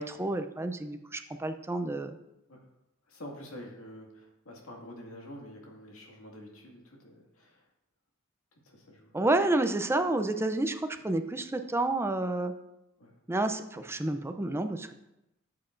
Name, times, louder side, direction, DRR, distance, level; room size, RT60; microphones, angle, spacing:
voice 1, 0.0-2.2 9.1-12.5 13.3-14.9, right 2 dB, 10° right, 8 dB, 0.5 m, -29 dB
voice 2, 3.1-7.6 8.6-9.2 13.0-13.1, equal, 80° left, -1 dB, 2.0 m, -47 dB
13.0 x 7.6 x 2.6 m, 0.89 s
head